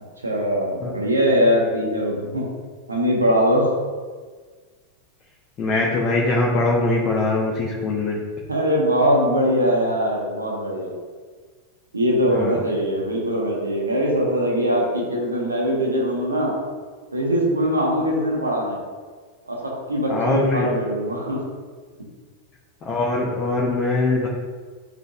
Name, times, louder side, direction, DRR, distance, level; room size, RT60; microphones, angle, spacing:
voice 1, 0.2-2.4 2.9-3.8 8.5-10.9 11.9-16.5 17.1-18.8 19.5-21.4, equal, 80° right, -2 dB, 1.3 m, -21 dB
voice 2, 5.6-8.2 12.3-12.6 20.1-20.7 22.8-24.3, left 2 dB, 30° left, -4 dB, 1.1 m, -22 dB
10.5 x 4.0 x 2.5 m, 1.5 s
figure-of-eight pair, 90°, 0 cm